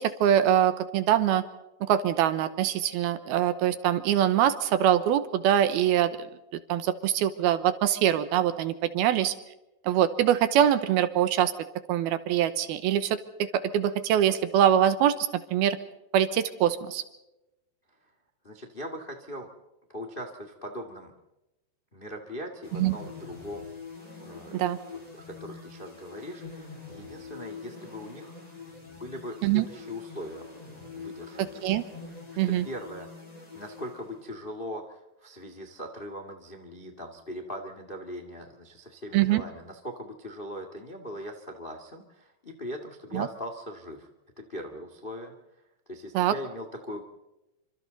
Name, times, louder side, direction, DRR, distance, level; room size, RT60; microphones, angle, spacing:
voice 1, 0.0-1.4 1.8-6.3 6.5-9.3 9.8-11.5 11.9-15.8 16.1-17.0 22.7-23.0 24.5-24.8 29.4-29.7 31.4-31.8 32.4-32.7 39.1-39.4 43.1-43.3 46.1-46.3, right 10 dB, 75° right, 12 dB, 2.6 m, -24 dB
voice 2, 18.4-19.5 19.9-21.1 21.9-23.7 24.2-24.6 24.9-28.4 28.9-31.6 32.4-33.1 33.5-44.1 44.4-45.3 45.9-47.0, equal, 45° left, 5 dB, 0.6 m, -40 dB
sound 1, 22.6-34.5, left 4 dB, 10° left, 4.6 m, -45 dB
28.5 x 25.5 x 4.0 m, 0.93 s
omnidirectional pair, 4.9 m